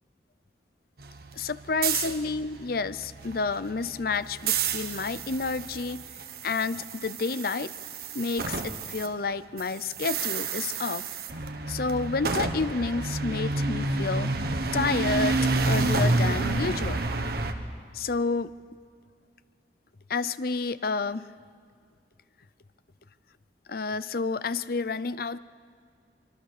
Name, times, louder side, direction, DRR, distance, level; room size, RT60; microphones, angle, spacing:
sound 1, 1.0-9.1 9.3-17.5, right 3 dB, 60° right, 1.4 m, -29 dB
voice 1, 1.3-6.0 6.4-7.7 8.1-11.0 11.7-14.3 14.7-17.0 17.9-18.5 20.1-21.3 23.7-25.4, left 4 dB, 55° left, 15 dB, 0.6 m, -30 dB
24.5 x 24.0 x 6.7 m, 2.1 s
head